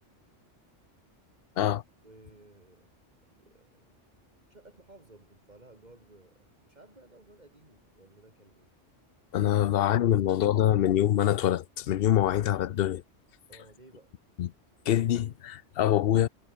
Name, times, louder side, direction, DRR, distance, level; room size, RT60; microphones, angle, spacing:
voice 1, 2.0-2.9 3.2-3.9 4.5-8.7 9.4-9.6 9.9-10.5 13.5-14.1, right 2 dB, 35° right, 3.8 m, -56 dB
voice 2, 9.3-13.0 14.4-14.5 14.9-16.3, left 11 dB, 60° left, 0.7 m, -25 dB
omnidirectional pair, 1.3 m